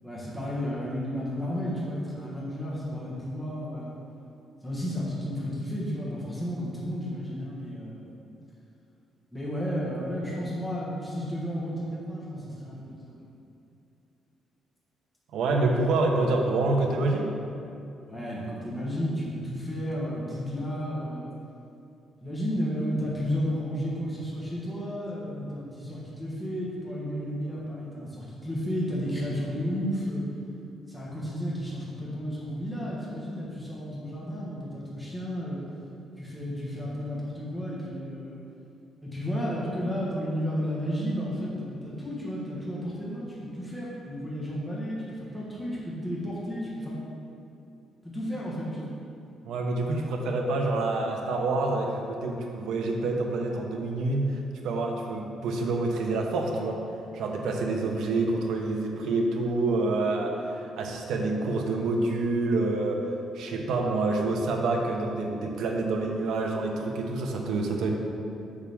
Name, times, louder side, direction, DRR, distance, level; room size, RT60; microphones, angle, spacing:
voice 1, 0.0-4.0 4.6-8.2 9.3-13.1 18.1-21.3 22.2-30.3 30.9-35.6 36.2-38.4 39.0-47.0 48.0-48.9, equal, ahead, -7 dB, 1.3 m, -32 dB
voice 2, 15.3-17.3 49.4-56.8 57.1-63.0 63.3-67.9, right 2 dB, 80° right, 2 dB, 0.9 m, -27 dB
7.2 x 6.6 x 3.6 m, 2.7 s
cardioid pair, 165°, 0 cm